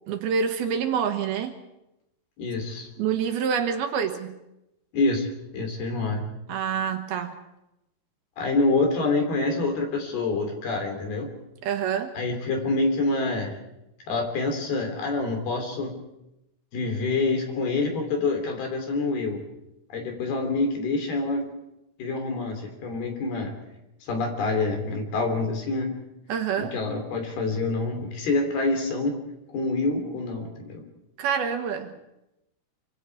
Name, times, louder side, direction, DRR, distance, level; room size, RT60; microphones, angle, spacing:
voice 1, 0.1-1.5 3.0-4.4 6.5-7.4 11.6-12.1 26.3-26.7 31.2-32.0, right 7 dB, 70° right, 6 dB, 3.0 m, -27 dB
voice 2, 2.4-2.9 4.9-6.2 8.4-11.3 12.1-13.6 14.1-16.0 16.7-19.4 19.9-21.4 22.0-23.5 24.0-25.9 26.6-29.2 29.5-30.8, left 3 dB, 65° left, 4 dB, 5.1 m, -26 dB
26.0 x 25.0 x 4.8 m, 0.88 s
omnidirectional pair, 4.9 m